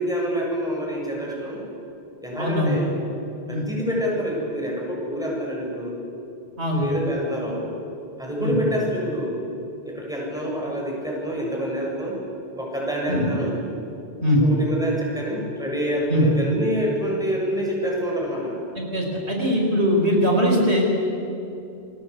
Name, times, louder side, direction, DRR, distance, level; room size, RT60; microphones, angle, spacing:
voice 1, 0.0-1.6 2.2-2.9 3.5-6.0 6.7-7.6 8.2-9.3 9.8-12.2 12.6-13.5 14.4-18.5, equal, 5° right, -3 dB, 7.3 m, -27 dB
voice 2, 2.4-2.8 3.5-3.6 6.6-6.8 8.4-8.6 13.1-13.3 14.2-14.4 16.1-16.2 18.7-20.8, equal, 80° right, 0 dB, 5.1 m, -21 dB
29.0 x 22.5 x 8.5 m, 2.8 s
omnidirectional pair, 1.1 m